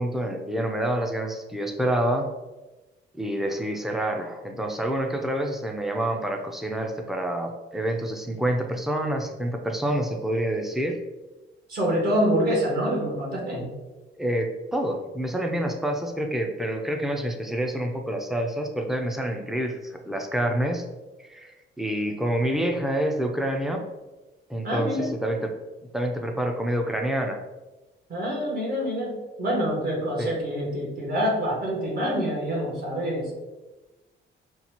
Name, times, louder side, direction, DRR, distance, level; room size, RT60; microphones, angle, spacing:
voice 1, 0.0-2.3 3.2-11.0 14.2-20.8 21.2-23.9 24.5-25.5 25.9-27.4 30.2-30.3, right 1 dB, ahead, 2 dB, 0.4 m, -27 dB
voice 2, 11.7-13.7 24.6-25.2 28.1-33.3, equal, 50° right, -3 dB, 1.5 m, -26 dB
5.4 x 2.4 x 2.9 m, 1.1 s
cardioid pair, 125°, 20 cm